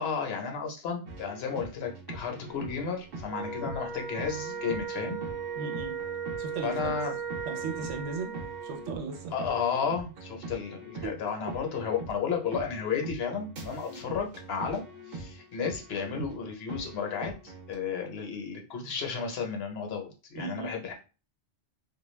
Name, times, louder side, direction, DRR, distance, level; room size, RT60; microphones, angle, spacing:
voice 1, 0.0-5.2 6.6-7.1 9.3-20.9, left 6 dB, 65° left, 3 dB, 0.9 m, -33 dB
sound 1, 1.1-17.8, right 2 dB, 60° right, 0.8 m, -43 dB
Wind instrument woodwind instrument, 3.3-8.9, right 6 dB, 25° right, 0.5 m, -37 dB
voice 2, 5.6-6.0 6.4-7.0 7.5-8.3 8.6-9.3 11.0-11.6 13.7-14.0 20.4-20.7, right 5 dB, 90° right, 3 dB, 0.9 m, -37 dB
2.3 x 2.2 x 3.1 m, 0.33 s
omnidirectional pair, 1.2 m